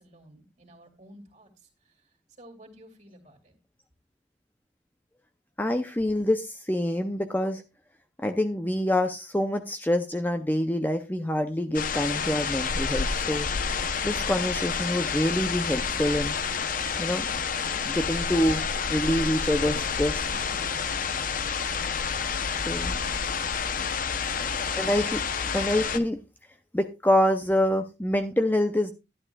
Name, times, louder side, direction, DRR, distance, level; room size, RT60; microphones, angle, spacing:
voice 1, 0.0-1.5 1.9-2.0 2.4-3.5 20.2-20.6 23.1-23.4 24.2-24.5, equal, 40° right, 1 dB, 2.5 m, -51 dB
voice 2, 5.6-7.6 8.2-13.5 14.0-16.4 17.0-17.3 17.9-18.6 18.9-20.3 22.7-23.0 24.4-26.2 26.7-28.9, left 1 dB, 10° left, 6 dB, 0.5 m, -26 dB
sound 1, 11.7-26.0, left 6 dB, 50° left, 0.7 m, -29 dB
12.5 x 11.0 x 2.3 m, 0.27 s
head